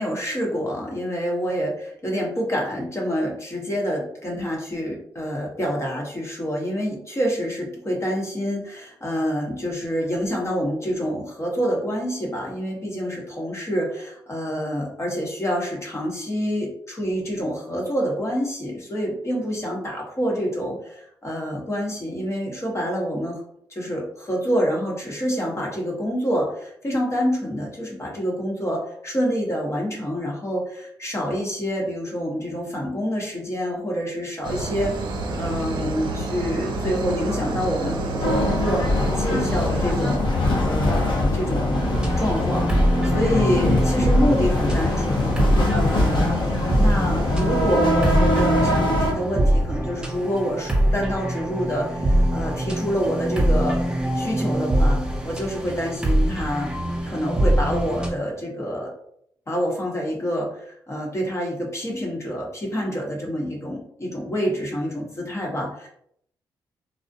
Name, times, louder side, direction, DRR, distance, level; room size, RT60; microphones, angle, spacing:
voice 1, 0.0-23.4 23.7-34.9 35.3-42.7 43.0-46.4 46.8-53.8 54.1-56.7 57.1-58.9 59.5-65.9, equal, 30° left, -2 dB, 0.9 m, -27 dB
sound 1, 34.4-40.2, right 2 dB, 55° right, 0.5 m, -29 dB
sound 2, 38.2-49.1, left 1 dB, 55° left, 0.7 m, -22 dB
sound 3, 41.7-58.1, right 1 dB, 10° right, 0.7 m, -23 dB
2.3 x 2.0 x 2.6 m, 0.70 s
supercardioid pair, 50°, 9 cm